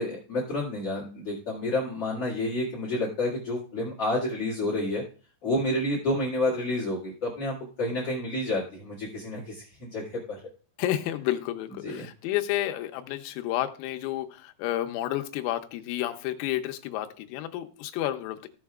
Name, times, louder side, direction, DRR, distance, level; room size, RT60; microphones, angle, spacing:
voice 1, 0.0-5.0 5.4-10.4 11.8-12.1, left 1 dB, 50° left, -4 dB, 1.9 m, -29 dB
voice 2, 10.8-18.5, left 13 dB, 85° left, 6 dB, 3.5 m, -31 dB
15.5 x 7.2 x 2.4 m, 0.38 s
omnidirectional pair, 5.9 m